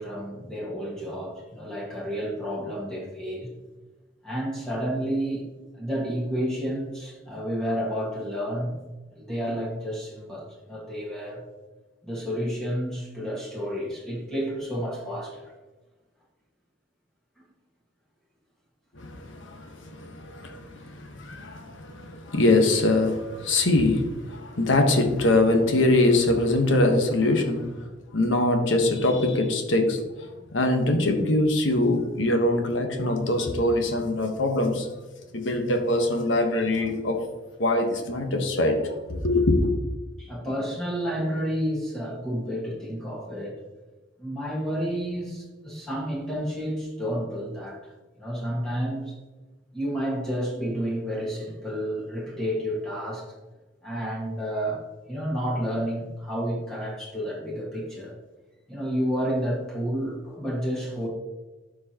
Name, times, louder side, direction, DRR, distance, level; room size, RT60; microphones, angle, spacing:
voice 1, 0.0-3.5 4.2-5.4 5.7-8.8 9.1-11.4 12.0-15.5 40.2-43.6 44.2-47.9 48.2-49.2 49.7-53.3 53.8-54.8 55.1-58.2 58.7-61.1, equal, 5° left, -5 dB, 1.7 m, -30 dB
voice 2, 18.9-27.9 28.1-30.0 30.5-34.9 35.3-37.2 37.6-39.7, left 2 dB, 80° left, 4 dB, 1.3 m, -23 dB
12.0 x 4.6 x 3.0 m, 1.2 s
head